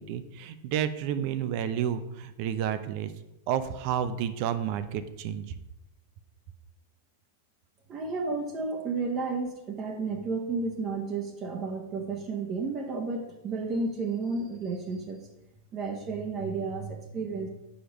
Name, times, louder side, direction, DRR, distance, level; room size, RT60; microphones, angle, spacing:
voice 1, 0.0-3.1 3.5-5.4, right 9 dB, 50° right, 12 dB, 0.6 m, -30 dB
voice 2, 7.9-15.3 15.7-17.5, right 4 dB, 35° right, 2 dB, 1.0 m, -32 dB
5.1 x 5.0 x 6.0 m, 0.90 s
hypercardioid pair, 100°, 0 cm